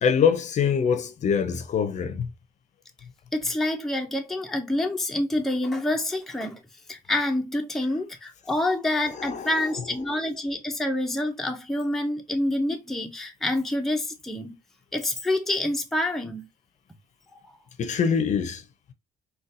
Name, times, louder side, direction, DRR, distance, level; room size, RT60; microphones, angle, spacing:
voice 1, 0.0-2.3 9.2-9.7 17.8-18.6, left 6 dB, 45° left, 0.6 m, -24 dB
voice 2, 3.3-6.6 6.9-14.6 14.9-16.5, left 1 dB, ahead, 0.5 m, -27 dB
3.9 x 2.3 x 2.6 m
cardioid pair, 110°, 17 cm